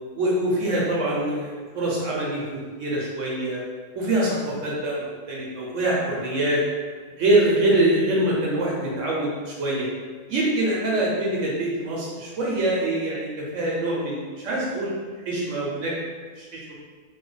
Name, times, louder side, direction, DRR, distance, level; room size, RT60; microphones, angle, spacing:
voice 1, 0.1-3.6 3.9-6.6 7.2-9.9 10.3-14.9 15.3-15.9 16.4-16.7, right 1 dB, 65° right, -4 dB, 1.0 m, -24 dB
3.1 x 2.1 x 3.8 m, 1.5 s
omnidirectional pair, 1.4 m